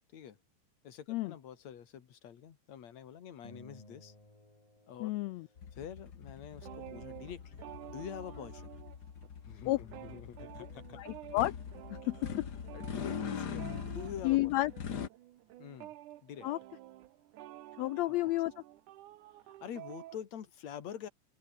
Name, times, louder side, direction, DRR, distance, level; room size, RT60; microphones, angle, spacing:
voice 1, 0.8-4.1 4.9-5.1 5.7-7.6 7.9-8.8 9.4-11.0 12.0-12.4 12.7-14.5 15.6-15.9 16.2-16.5 19.5-21.1, left 9 dB, 60° left, 3.3 m, -46 dB
sound 1, 3.4-6.1, left 1 dB, 10° left, 3.5 m, -57 dB
voice 2, 5.0-5.5 9.7-9.8 11.0-11.5 11.9-12.3 14.2-14.7 16.4-16.6 17.8-18.5, left 17 dB, 80° left, 1.5 m, -31 dB
sound 2, 5.6-15.1, left 7 dB, 40° left, 1.6 m, -43 dB
sound 3, 6.5-9.3 9.6-20.2, right 14 dB, 85° right, 2.5 m, -51 dB
open air
omnidirectional pair, 3.5 m